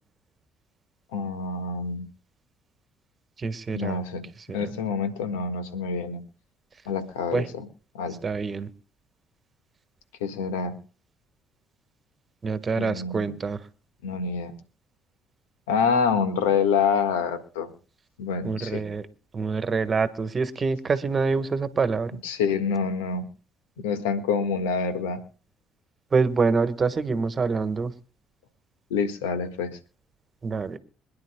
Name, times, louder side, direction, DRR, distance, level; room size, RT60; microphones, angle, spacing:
voice 1, 1.1-2.1 3.7-4.2 4.5-6.2 6.8-7.7 7.9-8.2 10.2-10.8 12.7-13.4 14.0-14.5 15.7-17.7 18.2-18.8 22.2-23.3 23.8-25.2 28.9-29.8, left 6 dB, 85° left, 9 dB, 1.6 m, -27 dB
voice 2, 3.4-4.0 4.5-4.7 7.3-7.4 8.2-8.7 12.4-13.6 18.4-19.0 19.3-22.2 26.1-27.9 30.4-30.8, right 4 dB, 35° right, 11 dB, 1.4 m, -26 dB
26.0 x 10.5 x 2.3 m, 0.36 s
hypercardioid pair, 55°, 0 cm